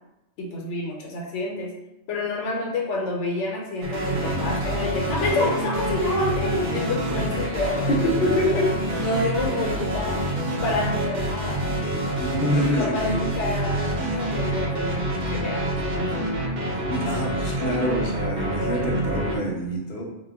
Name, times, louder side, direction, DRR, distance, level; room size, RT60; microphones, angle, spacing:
voice 1, 0.4-1.7 2.1-8.6 9.0-10.2 10.6-11.7 12.4-16.4 16.7-16.8, left 2 dB, 85° left, -1 dB, 0.9 m, -28 dB
sound 1, 3.8-19.4, right 1 dB, 60° right, 0.8 m, -27 dB
voice 2, 7.9-8.6 12.2-13.2 16.9-20.1, left 1 dB, 60° left, -2 dB, 0.8 m, -26 dB
2.2 x 2.1 x 3.3 m, 0.94 s
omnidirectional pair, 1.2 m